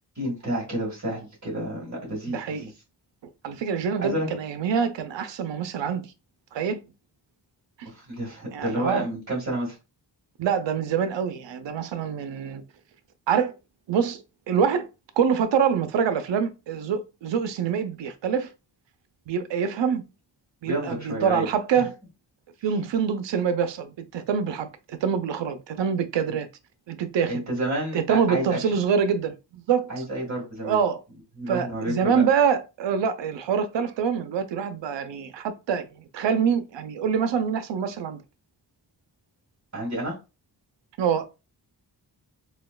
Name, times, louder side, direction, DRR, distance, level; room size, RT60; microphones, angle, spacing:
voice 1, 0.2-2.7 4.0-4.3 7.9-9.8 20.7-21.5 21.7-21.8 27.3-28.6 29.9-30.8 31.4-32.2 39.7-40.2, right 1 dB, 40° right, 1.8 m, -30 dB
voice 2, 2.3-2.7 3.4-6.1 6.5-6.8 8.5-9.1 10.4-12.6 13.3-13.5 13.9-14.9 15.2-18.5 19.3-20.0 20.6-22.0 22.6-26.5 26.9-27.4 27.9-30.0 30.6-31.0 31.5-38.2 41.0-41.3, right 7 dB, 85° right, 0.6 m, -25 dB
4.2 x 2.3 x 2.3 m
wide cardioid pair, 85°, 43 cm